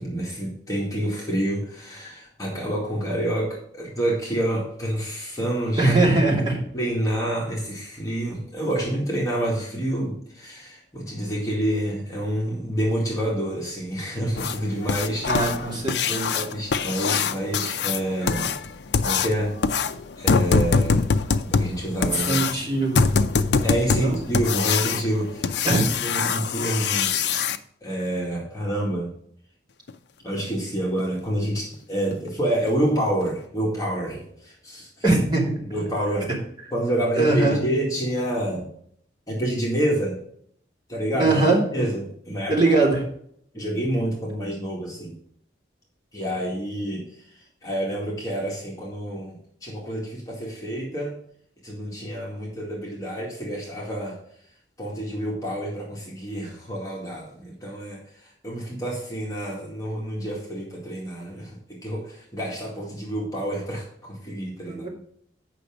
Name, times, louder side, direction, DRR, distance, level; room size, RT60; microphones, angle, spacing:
voice 1, 0.0-6.0 6.7-15.3 16.3-18.5 19.0-19.6 20.2-21.1 21.5-22.4 23.6-27.4 27.8-29.1 30.2-34.9 35.7-36.3 36.7-38.7 39.3-40.2 40.9-41.4 41.7-42.5 43.5-45.2 46.1-47.1 47.6-51.2 51.6-54.2 54.8-64.9, right 1 dB, 20° left, -4 dB, 2.1 m, -28 dB
voice 2, 5.8-6.6 15.3-16.4 22.3-23.1 24.0-24.2 25.6-25.8 35.0-35.5 37.2-37.7 41.2-41.6 42.5-43.0 64.7-64.9, right 2 dB, 25° right, -5 dB, 2.8 m, -21 dB
sound 1, 14.4-27.6 29.9-30.0 30.4-30.5 31.0-31.1 31.6-31.7 32.1-32.3 32.7-32.8 33.2-33.3, left 5 dB, 65° left, 0.5 m, -24 dB
8.3 x 5.9 x 5.1 m, 0.65 s
head